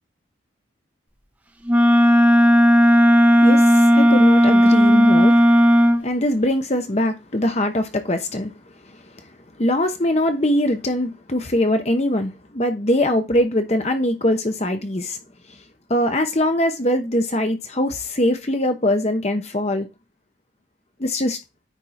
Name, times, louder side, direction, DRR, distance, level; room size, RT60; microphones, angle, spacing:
Wind instrument woodwind instrument, 1.7-6.0, equal, 10° right, 0.7 m, -14 dB
voice 1, 3.4-5.4 6.0-8.5 9.6-15.2 15.9-19.9 21.0-21.4, left 1 dB, 35° left, 0.9 m, -22 dB
9.2 x 3.5 x 4.3 m
head